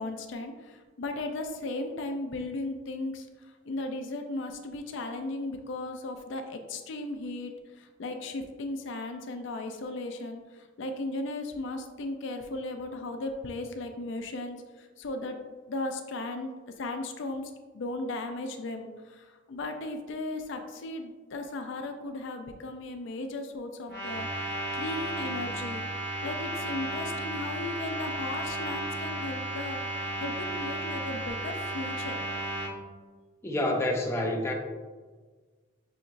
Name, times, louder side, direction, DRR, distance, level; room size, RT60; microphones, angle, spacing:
voice 1, 0.0-3.3 3.7-15.4 15.7-16.5 16.8-25.9 26.2-29.8 30.2-32.2, left 2 dB, 65° left, 5 dB, 0.4 m, -36 dB
sound 1, 23.9-32.7, right 1 dB, 75° right, 1.2 m, -34 dB
voice 2, 33.4-34.5, left 1 dB, 15° left, 0 dB, 0.5 m, -28 dB
5.7 x 2.9 x 2.6 m, 1.4 s
head